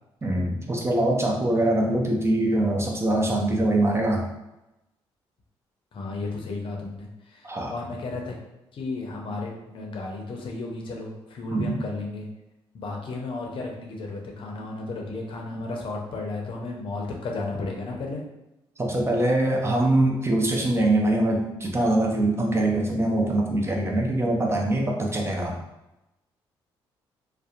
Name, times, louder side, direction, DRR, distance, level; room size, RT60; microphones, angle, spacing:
voice 1, 0.2-4.3 7.4-7.8 11.5-11.8 18.8-25.6, right 1 dB, 25° right, 0 dB, 0.6 m, -23 dB
voice 2, 5.9-8.3 8.7-12.3 12.7-18.2, left 3 dB, 60° left, 0 dB, 0.6 m, -33 dB
2.7 x 2.1 x 2.4 m, 0.93 s
supercardioid pair, 60°, 10 cm